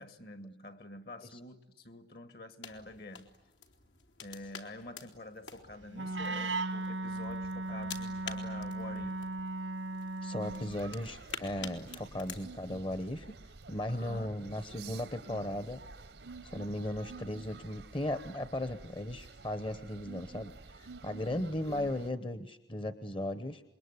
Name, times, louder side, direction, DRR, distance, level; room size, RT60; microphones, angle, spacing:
voice 1, 0.0-3.3 4.2-9.2 13.9-14.5 21.1-21.5, left 2 dB, 55° left, 1.8 m, -48 dB
sound 1, 2.6-12.4, left 6 dB, 85° left, 3.1 m, -49 dB
Wind instrument woodwind instrument, 5.9-10.8, right 2 dB, 90° right, 1.5 m, -37 dB
voice 2, 10.2-13.3 13.7-15.8 16.4-23.6, left 1 dB, 30° left, 0.9 m, -37 dB
sound 2, 10.4-22.1, right 3 dB, 70° right, 0.9 m, -50 dB
27.0 x 22.0 x 9.7 m
head